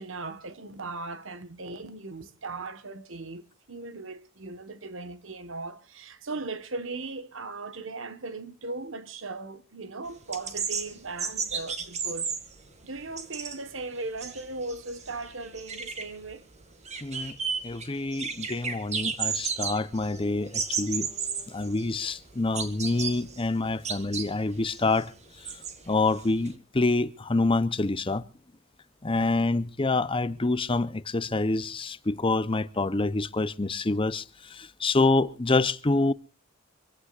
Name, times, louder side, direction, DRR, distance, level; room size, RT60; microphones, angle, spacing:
voice 1, 0.0-12.3 12.8-16.4, right 3 dB, 65° right, 1.4 m, -38 dB
sound 1, 10.1-26.5, right 6 dB, 35° right, 1.9 m, -34 dB
voice 2, 17.0-17.4 17.6-21.1 21.5-25.1 25.4-25.5 25.9-28.3 29.0-36.1, left 3 dB, 25° left, 0.7 m, -27 dB
26.0 x 16.5 x 2.5 m
head